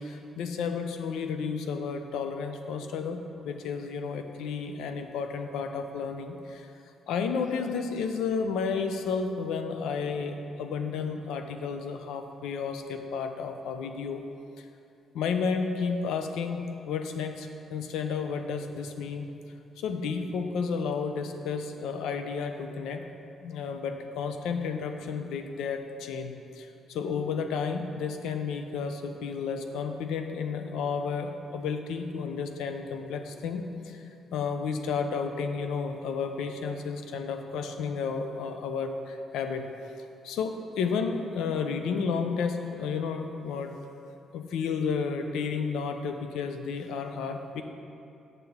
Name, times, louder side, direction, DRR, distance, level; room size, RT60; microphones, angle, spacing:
voice 1, 0.0-6.7 7.1-14.2 14.6-14.7 15.1-19.3 19.8-23.0 23.4-34.0 34.3-39.7 40.2-43.7 44.3-47.6, left 5 dB, 85° left, 6 dB, 0.5 m, -32 dB
7.9 x 6.7 x 3.5 m, 2.6 s
cardioid pair, 90°, 0 cm